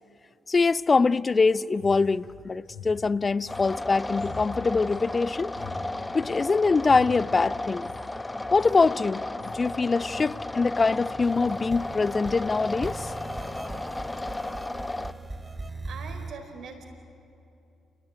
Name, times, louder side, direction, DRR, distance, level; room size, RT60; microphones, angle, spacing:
voice 1, 0.5-5.5 6.1-7.9 8.5-9.2 9.5-13.1, left 4 dB, 35° left, 0.6 m, -23 dB
sound 1, 1.7-6.5 6.8-7.2 7.7-8.0 8.4-8.8 9.1-9.7 9.9-10.3 10.9-11.1, left 4 dB, 75° left, 7.5 m, -44 dB
sound 2, 3.5-15.1, left 2 dB, 20° left, 1.0 m, -34 dB
sound 3, 11.2-16.3, right 2 dB, 20° right, 2.3 m, -39 dB
voice 2, 15.8-16.8, right 5 dB, 65° right, 4.5 m, -42 dB
28.5 x 19.0 x 9.4 m
hypercardioid pair, 45°, 0 cm